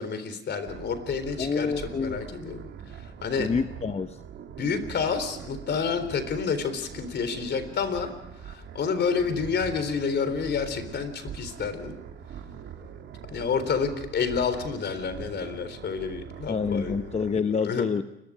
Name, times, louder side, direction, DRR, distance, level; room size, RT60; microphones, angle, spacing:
voice 1, 0.0-1.7 2.0-2.7 3.0-3.5 4.6-8.1 8.4-12.0 13.3-17.2 17.6-17.8, left 6 dB, 60° left, 11 dB, 3.8 m, -29 dB
sound 1, 0.7-17.4, right 8 dB, 80° right, 2.5 m, -42 dB
voice 2, 1.4-2.2 3.4-4.2 16.5-18.0, left 5 dB, 30° left, 9 dB, 0.8 m, -27 dB
29.5 x 21.5 x 5.0 m, 0.89 s
cardioid pair, 90°, 20 cm